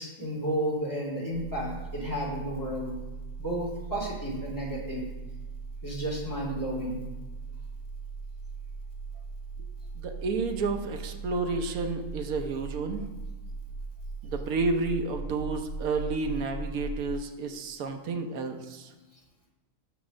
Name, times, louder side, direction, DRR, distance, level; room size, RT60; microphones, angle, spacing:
voice 1, 0.0-2.9 3.4-5.1 5.8-7.0, right 1 dB, 15° left, -5 dB, 2.3 m, -32 dB
sound 1, 1.3-17.2, right 3 dB, 85° left, 1.2 m, -39 dB
voice 2, 9.9-13.1 14.2-18.9, right 3 dB, 80° right, 5 dB, 1.2 m, -31 dB
6.0 x 5.2 x 6.3 m, 1.2 s
omnidirectional pair, 1.5 m